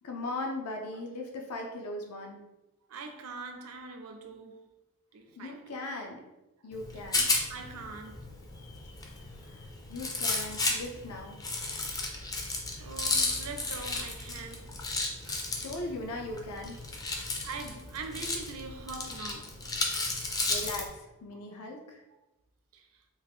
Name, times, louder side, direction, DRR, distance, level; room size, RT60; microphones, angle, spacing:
voice 1, 0.0-2.4 5.4-6.2 6.6-7.3 9.4-9.6 9.9-11.4 15.6-16.8 20.5-22.0, left 2 dB, 75° left, 0.5 m, -38 dB
voice 2, 2.9-4.6 5.1-5.9 7.5-8.3 12.3-12.4 12.7-14.7 15.2-15.6 17.4-19.6 21.3-21.4 22.7-23.0, right 4 dB, 65° right, 0.5 m, -43 dB
Rattle, 6.7-20.9, left 2 dB, 15° left, 0.4 m, -34 dB
3.5 x 2.4 x 3.5 m
head